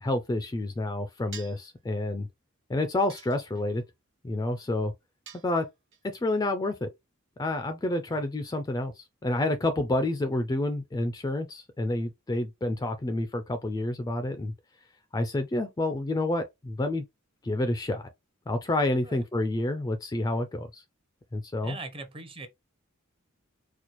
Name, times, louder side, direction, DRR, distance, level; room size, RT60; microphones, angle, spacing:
voice 1, 0.0-2.3 2.7-3.8 4.2-4.9 5.4-5.7 6.1-6.9 7.4-14.5 15.1-17.0 17.4-18.0 18.5-20.8 21.3-21.8, left 1 dB, 20° left, 0.3 m, -29 dB
sound 1, 1.3-1.7 3.1-3.8 5.3-6.0, right 7 dB, 60° right, 0.8 m, -47 dB
voice 2, 21.6-22.5, right 3 dB, 25° right, 0.7 m, -41 dB
4.2 x 2.2 x 3.0 m
head